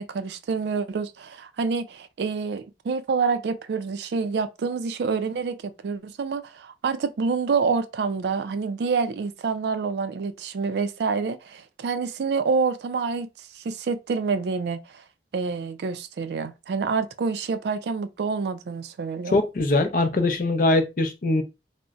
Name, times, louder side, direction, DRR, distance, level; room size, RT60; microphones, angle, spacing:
voice 1, 0.0-14.8 15.3-19.3, right 5 dB, 65° right, 0.3 m, -27 dB
voice 2, 19.3-21.4, left 2 dB, 45° left, 0.4 m, -22 dB
3.8 x 2.0 x 2.3 m
head